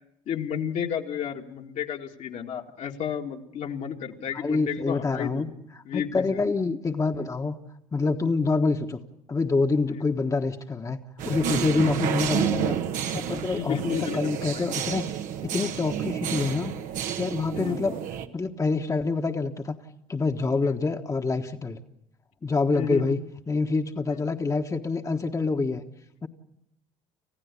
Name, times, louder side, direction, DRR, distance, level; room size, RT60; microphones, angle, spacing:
voice 1, 0.3-5.5 5.9-6.4 9.9-10.1 11.7-12.0 13.6-14.2 14.5-14.6 17.5-17.8 20.6-20.7 22.7-23.1 24.1-24.2, left 8 dB, 60° left, 2 dB, 2.0 m, -32 dB
voice 2, 4.3-7.6 7.9-9.0 9.3-11.0 11.2-12.8 13.1-15.1 15.4-16.7 17.1-18.0 18.3-19.8 20.1-21.8 22.4-23.2 23.5-25.8 26.2-26.3, left 3 dB, 25° left, 4 dB, 1.4 m, -26 dB
sound 1, 11.2-18.3, right 9 dB, 70° right, 1.4 m, -30 dB
29.0 x 15.0 x 8.3 m, 0.81 s
supercardioid pair, 75°, 14 cm